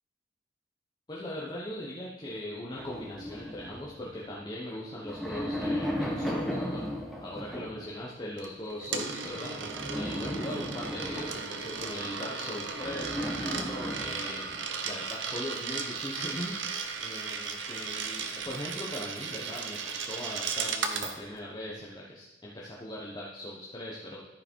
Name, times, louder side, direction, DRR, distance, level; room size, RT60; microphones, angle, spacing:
voice 1, 1.1-6.9 7.2-24.3, left 1 dB, 25° left, -5 dB, 1.1 m, -40 dB
sound 1, 2.8-4.4 4.9-8.0 9.5-12.1 12.7-14.7, equal, ahead, 1.1 m, -36 dB
Coin (dropping), 8.4-21.2, right 5 dB, 70° right, 0.9 m, -36 dB
13.5 x 5.0 x 4.6 m, 1.1 s
head